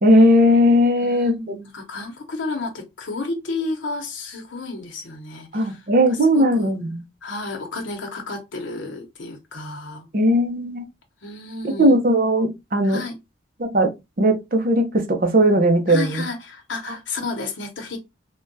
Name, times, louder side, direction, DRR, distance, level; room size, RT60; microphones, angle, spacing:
voice 1, 0.0-1.6 5.5-7.0 10.1-10.9 11.8-13.0 13.6-13.9 14.2-16.2, equal, 50° right, 0.6 m, -18 dB
voice 2, 1.0-6.7 7.2-10.1 11.2-12.0 12.8-13.2 15.9-18.0, left 3 dB, 90° left, 0.8 m, -32 dB
3.5 x 2.2 x 2.6 m
head